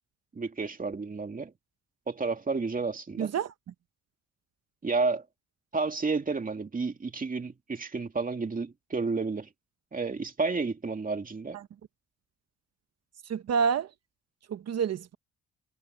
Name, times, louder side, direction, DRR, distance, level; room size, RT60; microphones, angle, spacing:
voice 1, 0.3-1.5 2.1-3.3 4.8-5.2 5.7-9.5 9.9-11.6, right 4 dB, 30° right, 2.5 m, -31 dB
voice 2, 3.2-3.5 13.3-13.9 14.5-15.1, right 6 dB, 55° right, 1.1 m, -28 dB
cardioid pair, 90°, 30 cm